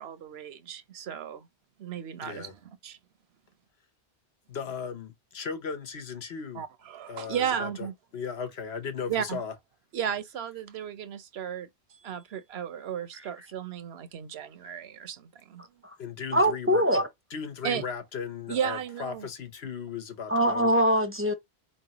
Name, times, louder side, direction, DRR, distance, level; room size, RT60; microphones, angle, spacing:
voice 1, 0.0-1.5 1.8-3.0 6.5-7.9 9.1-9.4 9.9-15.7 17.6-17.8 18.5-19.3, right 8 dB, 80° right, 1.0 m, -34 dB
voice 2, 2.2-2.5 4.5-6.6 7.1-7.9 8.1-9.5 16.0-16.8 17.3-20.7, left 6 dB, 80° left, 1.2 m, -36 dB
voice 3, 16.3-17.1 20.3-21.3, equal, 15° right, 0.6 m, -23 dB
4.3 x 3.2 x 2.9 m
omnidirectional pair, 1.1 m